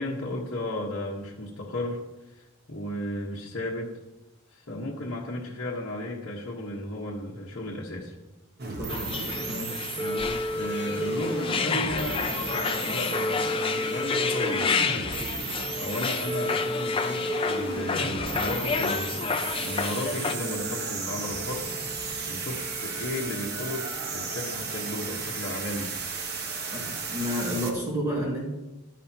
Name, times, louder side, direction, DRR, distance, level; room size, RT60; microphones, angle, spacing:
voice 1, 0.0-3.9 4.5-8.1 9.0-9.2 9.9-14.8 15.7-21.7 22.3-25.9 26.8-27.0, left 1 dB, 55° left, -5 dB, 1.2 m, -34 dB
sound 1, 8.6-27.7, right 2 dB, 45° right, 1.1 m, -33 dB
voice 2, 8.8-9.9 26.7-28.5, equal, 15° right, -5 dB, 2.0 m, -31 dB
sound 2, 8.9-20.3, left 5 dB, 25° left, 0.5 m, -30 dB
12.0 x 10.5 x 2.9 m, 1.0 s
head